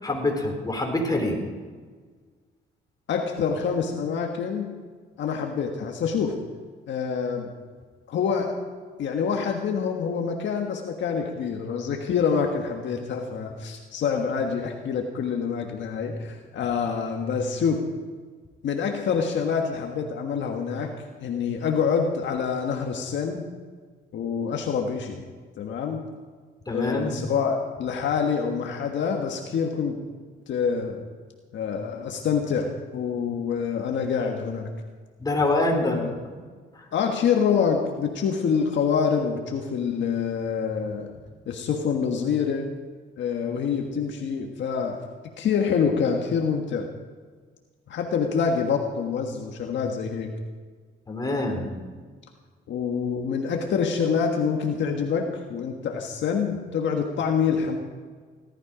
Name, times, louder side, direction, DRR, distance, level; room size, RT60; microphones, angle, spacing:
voice 1, 0.0-1.4 26.7-27.1 35.2-36.0 51.1-51.7, left 2 dB, 20° left, 1 dB, 3.8 m, -25 dB
voice 2, 3.1-4.7 5.2-6.4 6.9-7.5 8.1-8.6 9.0-17.9 18.6-20.9 21.2-23.5 24.1-25.2 25.6-26.0 26.7-30.0 30.5-31.0 31.5-34.7 35.8-36.1 36.9-41.1 41.5-42.7 43.2-45.0 45.4-46.9 47.9-50.3 52.7-57.8, left 6 dB, 70° left, 2 dB, 1.6 m, -26 dB
17.5 x 13.0 x 5.1 m, 1.5 s
cardioid pair, 90°, 20 cm